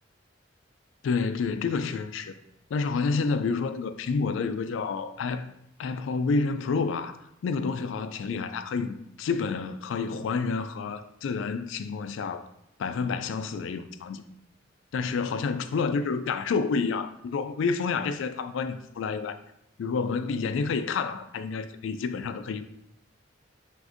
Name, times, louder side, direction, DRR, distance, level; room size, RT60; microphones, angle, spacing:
voice 1, 1.0-2.3 2.7-5.5 5.8-12.5 12.8-14.2 14.9-19.4 19.8-22.7, left 4 dB, 75° left, 0.3 m, -29 dB
5.9 x 2.5 x 2.5 m
head